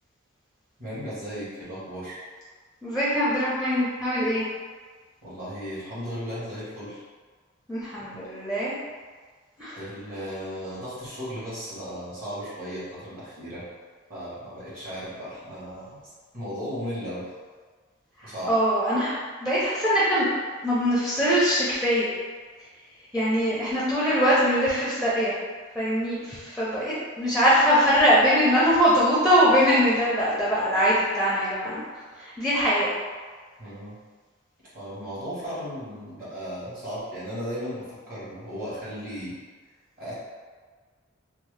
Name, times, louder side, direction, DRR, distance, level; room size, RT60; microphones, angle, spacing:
voice 1, 0.8-2.2 5.2-7.0 8.0-8.2 9.7-13.6 14.1-16.0 16.3-17.3 18.2-18.5 33.6-33.9 34.7-39.3 40.0-40.1, equal, 50° right, -10 dB, 1.3 m, -35 dB
voice 2, 2.8-4.4 7.7-8.7 9.6-9.8 18.5-20.3 20.6-22.1 23.1-25.3 25.8-31.8 32.2-32.9, equal, 5° right, -8 dB, 0.5 m, -22 dB
2.7 x 2.1 x 3.2 m, 1.5 s
head